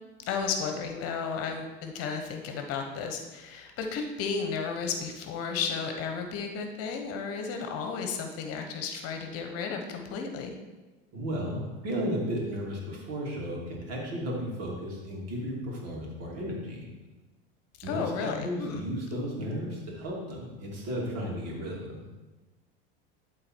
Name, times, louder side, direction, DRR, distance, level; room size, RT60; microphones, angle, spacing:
voice 1, 0.3-10.5 17.9-18.9, left 5 dB, 50° left, 5 dB, 1.1 m, -33 dB
voice 2, 11.1-16.8 17.8-22.0, equal, 50° right, -2 dB, 2.8 m, -34 dB
11.5 x 3.9 x 4.5 m, 1.2 s
hypercardioid pair, 95°, 31 cm